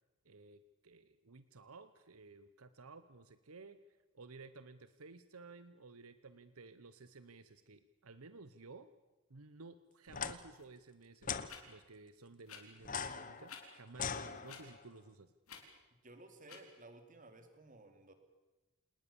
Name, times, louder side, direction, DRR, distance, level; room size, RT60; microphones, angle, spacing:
voice 1, 0.2-3.8 4.1-8.9 9.3-15.3, right 3 dB, 80° right, 12 dB, 1.0 m, -55 dB
sound 1, 10.1-10.3 11.2-11.5 12.8-14.8, left 6 dB, 40° left, 1.1 m, -41 dB
sound 2, 10.6-10.7 11.5-11.6 12.4-12.6 13.4-13.6 14.4-14.6 15.5-15.6 16.4-16.6, left 8 dB, 85° left, 4.0 m, -51 dB
voice 2, 16.0-18.1, right 2 dB, 35° right, 7 dB, 2.9 m, -56 dB
28.0 x 19.5 x 7.1 m, 1.1 s
head